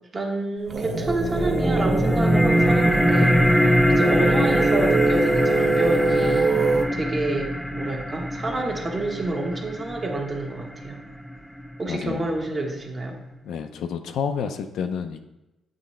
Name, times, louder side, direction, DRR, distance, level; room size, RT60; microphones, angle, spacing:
voice 1, 0.1-6.6 6.9-11.0 11.8-13.2, right 2 dB, 35° right, 1 dB, 1.1 m, -28 dB
sound 1, 0.7-6.8, right 2 dB, 60° right, 0.7 m, -23 dB
sound 2, 1.1-12.1, equal, ahead, 0.4 m, -23 dB
voice 2, 11.9-12.3 13.4-15.2, left 7 dB, 75° left, 7 dB, 0.5 m, -29 dB
7.7 x 3.1 x 4.3 m, 0.98 s
cardioid pair, 90°, 0 cm